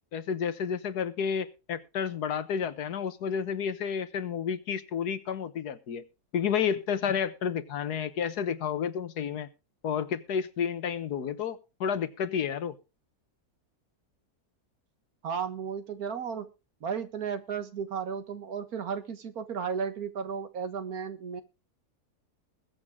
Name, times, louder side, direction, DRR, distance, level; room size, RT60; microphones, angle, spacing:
voice 1, 0.1-6.0 6.3-9.5 9.8-12.7, left 7 dB, 90° left, 12 dB, 1.6 m, -31 dB
voice 2, 15.2-16.5 16.8-21.4, right 6 dB, 70° right, 9 dB, 1.8 m, -34 dB
21.0 x 8.1 x 3.6 m, 0.30 s
omnidirectional pair, 1.6 m